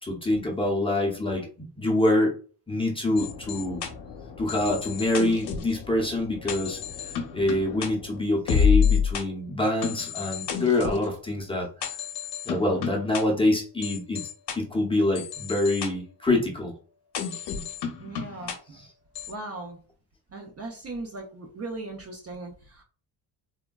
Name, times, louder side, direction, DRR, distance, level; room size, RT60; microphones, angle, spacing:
voice 1, 0.0-2.3 2.7-3.8 4.4-12.0 12.4-14.2 14.6-16.7 18.7-18.9, left 1 dB, 10° left, -1 dB, 0.6 m, -26 dB
sound 1, 3.2-9.2 9.8-11.1 11.8-13.2 13.8-14.6 15.1-15.9 17.1-18.6 19.1-19.3, left 7 dB, 60° left, 0.7 m, -29 dB
voice 2, 18.0-18.5 19.3-19.8 20.3-22.8, right 2 dB, 35° right, 2 dB, 0.5 m, -38 dB
3.5 x 2.1 x 2.2 m, 0.39 s
cardioid pair, 125°, 45 cm